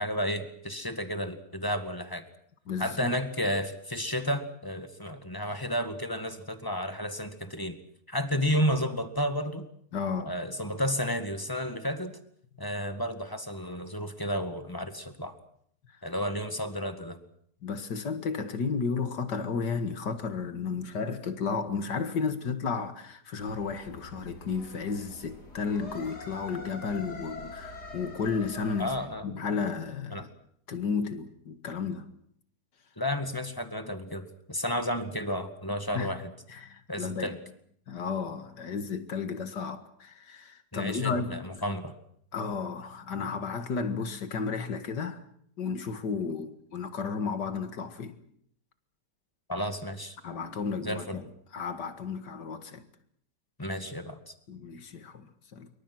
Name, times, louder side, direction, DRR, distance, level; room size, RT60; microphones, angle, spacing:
voice 1, 0.0-2.2 2.8-7.8 8.1-9.7 10.2-12.1 12.6-15.3 16.0-17.2 28.8-29.3 30.1-30.3 33.0-36.3 36.9-37.4 40.7-41.9 49.5-50.2 50.8-51.2 53.6-54.3, equal, 15° left, 1.8 m, -32 dB
voice 2, 2.7-3.2 9.9-10.3 17.6-28.9 29.2-30.3 30.7-32.1 35.9-36.1 36.5-37.4 37.9-41.4 42.3-45.2 45.6-48.2 50.2-51.2 51.5-52.8 54.5-55.7, left 5 dB, 90° left, 2.4 m, -33 dB
sound 1, 23.4-29.1, left 2 dB, 70° left, 4.1 m, -44 dB
27.0 x 23.5 x 6.2 m
omnidirectional pair, 1.8 m